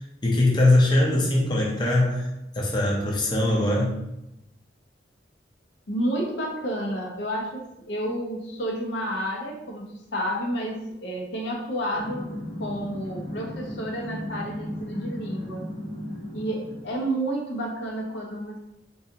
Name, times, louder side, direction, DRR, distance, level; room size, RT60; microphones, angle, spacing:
voice 1, 0.2-2.3 2.5-4.0, left 1 dB, 25° left, -3 dB, 0.5 m, -21 dB
voice 2, 5.9-12.3 12.6-15.7 16.3-18.6, right 1 dB, 70° left, 0 dB, 0.7 m, -30 dB
sound 1, 11.9-17.0, equal, 50° left, 1.2 m, -36 dB
3.8 x 2.5 x 2.8 m, 0.90 s
head